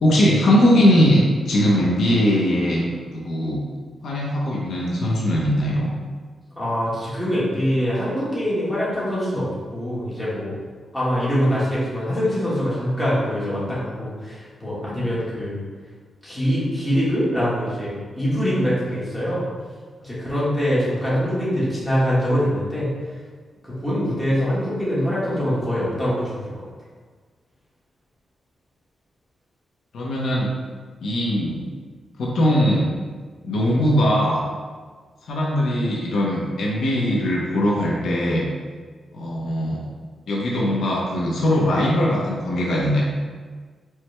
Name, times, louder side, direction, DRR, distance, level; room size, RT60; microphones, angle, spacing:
voice 1, 0.0-2.9 3.1-3.6 4.0-5.9 13.3-13.7 29.9-30.5 31.0-31.6 32.2-32.9 33.4-34.4 35.2-38.5 39.1-39.9 40.3-43.0, equal, 75° left, -4 dB, 0.8 m, -20 dB
voice 2, 6.6-10.5 10.9-15.6 16.2-19.4 20.0-22.9 23.6-26.5, equal, 10° left, -9 dB, 1.5 m, -23 dB
4.6 x 4.3 x 2.2 m, 1.5 s
wide cardioid pair, 140°, 0 cm